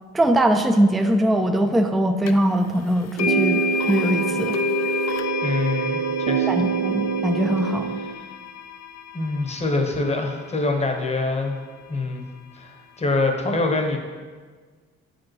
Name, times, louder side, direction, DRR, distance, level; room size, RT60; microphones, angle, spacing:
voice 1, 0.1-3.6 3.9-4.6 6.5-8.0, right 1 dB, ahead, 6 dB, 0.3 m, -21 dB
sound 1, 2.3-2.4 3.2-11.2, left 7 dB, 60° left, 0.5 m, -30 dB
Dissonance - Supercollider, 3.2-8.1, right 8 dB, 70° right, 0.4 m, -26 dB
voice 2, 5.4-6.7 9.1-11.6 11.9-12.2 12.5-14.0, left 3 dB, 20° left, 3 dB, 0.9 m, -25 dB
7.0 x 5.1 x 3.1 m, 1.5 s
cardioid pair, 90°, 30 cm